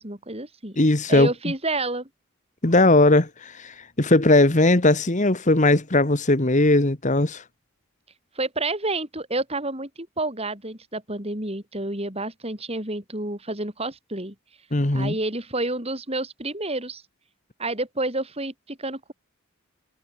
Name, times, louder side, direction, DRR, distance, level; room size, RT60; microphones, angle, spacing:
voice 1, 0.0-0.8 1.1-2.1 8.4-14.3 14.9-17.0 17.6-19.1, right 2 dB, 30° right, 7.2 m, -29 dB
voice 2, 0.8-1.3 2.6-7.4 14.7-15.1, left 2 dB, 35° left, 1.6 m, -19 dB
head